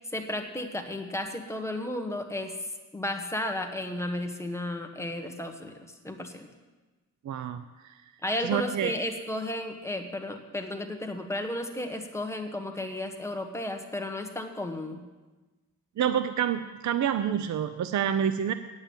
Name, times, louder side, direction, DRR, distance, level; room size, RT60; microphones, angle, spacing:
voice 1, 0.0-2.5 2.9-5.8 6.0-6.5 8.2-15.0, left 1 dB, 10° left, 4 dB, 1.2 m, -33 dB
voice 2, 7.2-7.9 8.4-8.9 16.0-18.5, right 9 dB, 60° right, 11 dB, 0.6 m, -28 dB
8.8 x 8.2 x 8.5 m, 1.2 s
wide cardioid pair, 120°, 33 cm